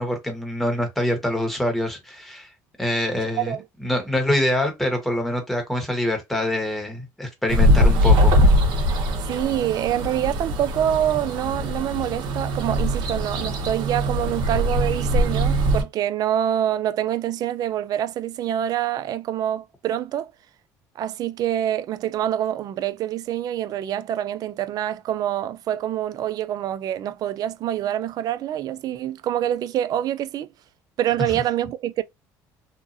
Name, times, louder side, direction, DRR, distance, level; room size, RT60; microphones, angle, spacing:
voice 1, 0.0-2.5 2.8-3.5 3.8-8.4, left 1 dB, ahead, 1.3 m, -25 dB
sound 1, 7.5-15.8, equal, 70° right, 0.9 m, -21 dB
voice 2, 9.3-20.3 21.0-30.5 31.0-32.0, right 11 dB, 55° right, 0.3 m, -26 dB
2.8 x 2.4 x 2.5 m
supercardioid pair, 85°, 8 cm